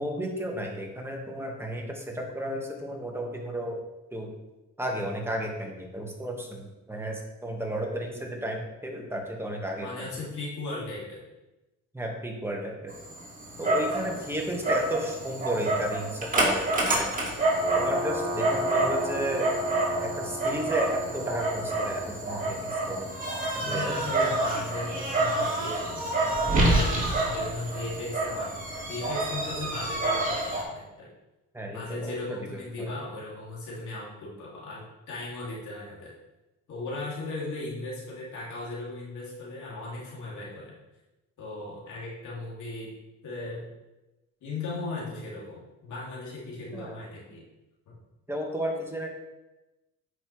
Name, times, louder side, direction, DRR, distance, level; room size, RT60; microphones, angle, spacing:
voice 1, 0.0-3.8 4.1-4.3 4.8-9.9 11.9-12.9 13.6-17.1 17.7-19.5 20.0-23.1 23.7-23.9 31.5-32.2 32.8-32.9 46.7-47.0 48.3-49.1, right 1 dB, 10° right, 1 dB, 1.5 m, -33 dB
voice 2, 9.8-11.2 13.6-14.4 23.6-28.6 28.9-31.1 31.7-36.1 36.7-40.7 41.4-42.9 43.2-43.7 44.4-47.4 47.9-48.0, left 2 dB, 75° left, -6 dB, 2.7 m, -37 dB
Dog, 12.9-30.6, right 2 dB, 25° right, 2.2 m, -28 dB
9.0 x 5.6 x 3.2 m, 1.0 s
cardioid pair, 90°, 30 cm